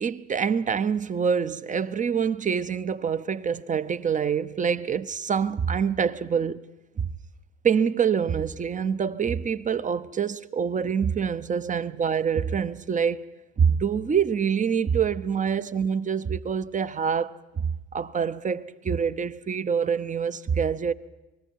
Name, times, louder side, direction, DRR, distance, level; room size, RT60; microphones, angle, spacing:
voice 1, 0.0-6.6 7.0-7.1 7.6-13.3 13.6-20.9, right 7 dB, 25° right, 0.7 m, -26 dB
28.5 x 20.0 x 4.6 m
hypercardioid pair, 65°, 33 cm